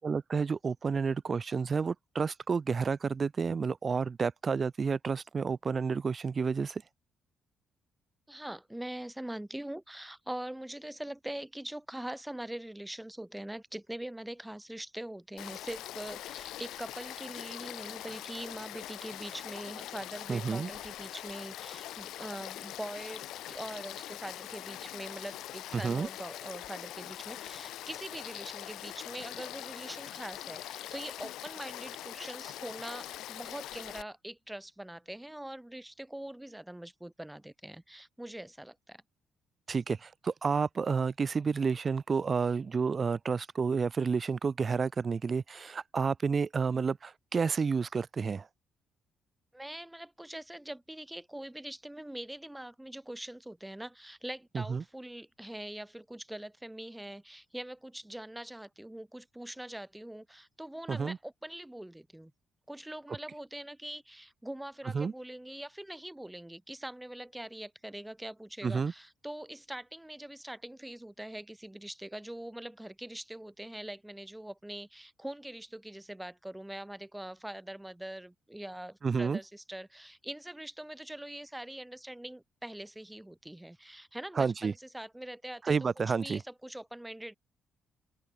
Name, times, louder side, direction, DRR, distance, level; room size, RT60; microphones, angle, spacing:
voice 1, 0.0-6.8 20.3-20.7 25.8-26.1 39.7-48.5 54.5-54.8 60.9-61.2 64.9-65.1 68.6-68.9 79.0-79.4 84.4-84.7 85.7-86.4, right 5 dB, 40° right, 0.6 m, -30 dB
voice 2, 8.3-39.0 49.5-62.3 62.7-85.8 86.2-87.4, right 1 dB, 5° right, 3.3 m, -43 dB
Frog / Stream, 15.4-34.0, left 13 dB, 85° left, 0.6 m, -43 dB
open air
cardioid pair, 90°, 0 cm